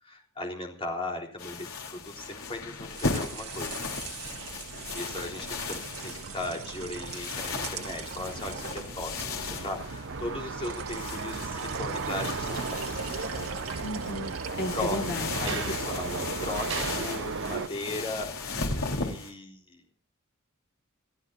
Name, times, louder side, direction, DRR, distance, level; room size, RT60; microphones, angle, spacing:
voice 1, 0.0-3.8 4.9-13.3 14.7-15.0 15.4-19.8, left 2 dB, 25° left, 0 dB, 3.8 m, -37 dB
sound 1, 1.4-19.3, left 3 dB, 75° left, 3.7 m, -36 dB
sound 2, 2.8-15.1, right 6 dB, 80° right, 2.0 m, -43 dB
sound 3, 3.8-17.7, right 5 dB, 60° right, 0.8 m, -37 dB
voice 2, 13.8-15.6, left 1 dB, 55° left, 3 dB, 1.7 m, -35 dB
28.5 x 13.5 x 2.6 m, 0.37 s
head